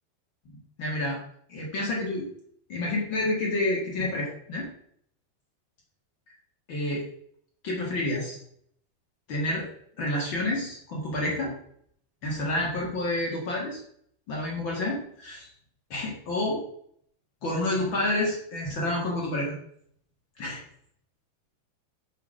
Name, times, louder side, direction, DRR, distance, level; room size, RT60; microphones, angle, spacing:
voice 1, 0.4-1.2 1.5-2.3 2.7-4.7 6.7-7.1 7.6-8.4 9.3-9.7 10.0-11.5 12.2-13.8 14.3-15.5 15.9-16.6 17.4-19.5 20.4-20.6, left 1 dB, 75° left, -2 dB, 1.1 m, -29 dB
6.7 x 5.5 x 6.3 m, 0.66 s
omnidirectional pair, 5.3 m